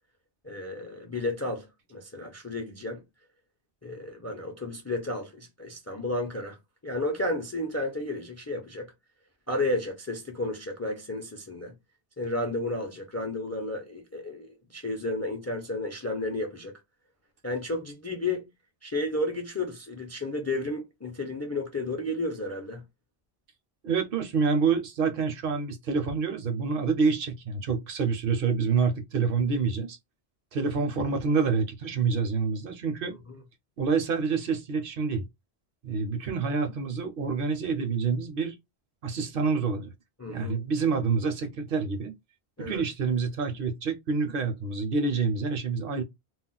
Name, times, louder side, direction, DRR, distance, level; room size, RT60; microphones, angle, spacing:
voice 1, 0.4-3.0 3.8-6.6 6.8-8.9 9.5-11.7 12.2-16.7 17.4-18.5 18.8-22.8 40.2-40.6 42.6-42.8, left 2 dB, 25° left, 0.4 m, -32 dB
voice 2, 23.8-30.0 30.5-33.1 33.8-35.2 35.8-38.6 39.0-39.9 40.3-42.1 42.6-46.0, right 5 dB, 65° right, 0.7 m, -27 dB
2.3 x 2.0 x 3.8 m
omnidirectional pair, 1.1 m